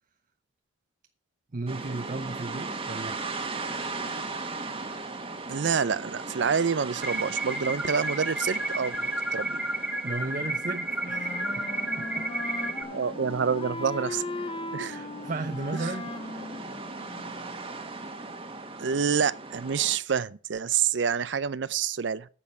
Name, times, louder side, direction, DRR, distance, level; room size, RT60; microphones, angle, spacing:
voice 1, 1.5-3.2 10.0-12.3 14.8-16.6, right 3 dB, 45° right, 0.8 m, -35 dB
sound 1, 1.7-20.0, right 3 dB, 30° right, 1.4 m, -38 dB
voice 2, 5.5-9.6 12.9-14.2 14.7-14.9 18.8-22.3, right 6 dB, 75° right, 0.5 m, -27 dB
sound 2, 7.0-12.8, right 2 dB, 5° right, 2.0 m, -31 dB
Wind instrument woodwind instrument, 11.0-17.6, left 2 dB, 30° left, 0.8 m, -38 dB
9.8 x 7.3 x 7.0 m
head